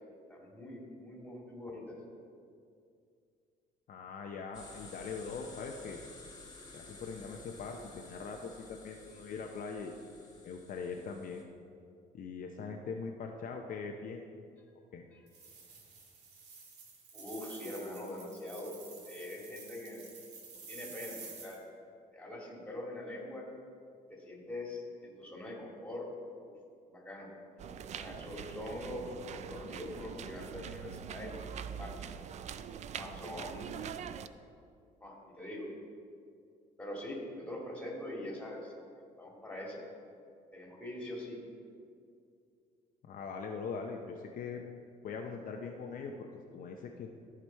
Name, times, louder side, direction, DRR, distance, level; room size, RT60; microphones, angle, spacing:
voice 1, 0.3-2.0 15.1-15.2 17.1-18.7 19.1-20.0 20.5-21.6 22.1-23.5 24.1-26.1 26.9-27.3 27.6-31.9 32.9-33.8 35.0-35.7 36.8-38.7 39.2-39.8 40.5-41.4, left 1 dB, 5° left, -2 dB, 2.4 m, -43 dB
voice 2, 3.9-6.0 6.7-9.9 10.4-11.4 12.1-14.2 14.9-15.0 43.0-44.6 45.0-46.3 46.5-47.1, left 5 dB, 55° left, 2 dB, 0.7 m, -41 dB
sound 1, 4.5-11.4, left 3 dB, 25° left, 1.5 m, -53 dB
sound 2, 15.3-21.6, right 4 dB, 75° right, 1.9 m, -50 dB
sound 3, 27.6-34.3, right 8 dB, 45° right, 0.4 m, -43 dB
14.5 x 4.9 x 4.5 m, 2.4 s
cardioid pair, 110°, 17 cm